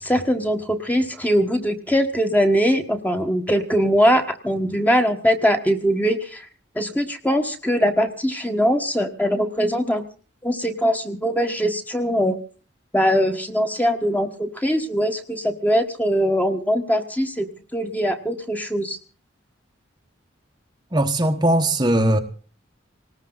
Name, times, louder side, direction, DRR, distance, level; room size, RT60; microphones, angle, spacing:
voice 1, 0.0-6.5 6.7-10.0 10.4-12.4 12.9-17.5 17.7-19.0, equal, 10° left, 1.4 m, -21 dB
voice 2, 20.9-22.2, right 1 dB, 20° right, 1.1 m, -19 dB
19.0 x 18.5 x 4.0 m
head